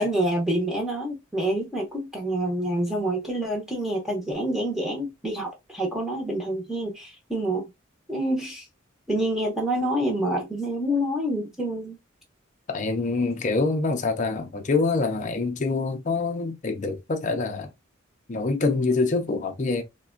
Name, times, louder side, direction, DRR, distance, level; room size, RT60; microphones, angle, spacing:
voice 1, 0.0-7.7 8.1-8.6 9.1-12.0, right 1 dB, ahead, 0.7 m, -27 dB
voice 2, 12.7-17.7 18.3-19.8, left 3 dB, 35° left, 0.5 m, -25 dB
3.4 x 2.2 x 2.3 m
head